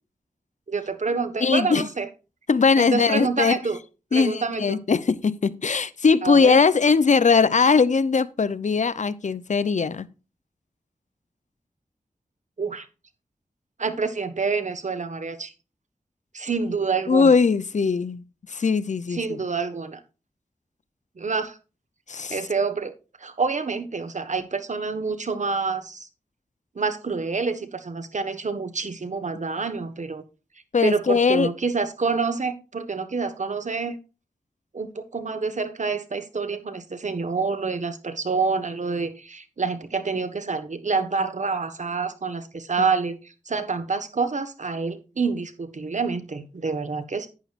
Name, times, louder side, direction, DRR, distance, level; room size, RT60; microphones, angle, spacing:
voice 1, 0.7-2.1 2.8-3.8 4.1-4.8 6.2-6.6 12.6-12.9 13.8-15.5 16.3-17.3 19.1-20.0 21.2-21.6 22.3-22.9 23.2-26.1 26.7-30.2 30.8-34.0 34.7-47.3, right 4 dB, 60° right, 1.3 m, -27 dB
voice 2, 1.4-1.9 2.5-3.6 4.1-10.1 17.1-19.4 22.1-22.4 30.7-31.5 42.8-42.9, left 5 dB, 60° left, 0.6 m, -20 dB
11.0 x 9.2 x 2.5 m
wide cardioid pair, 55°, 14 cm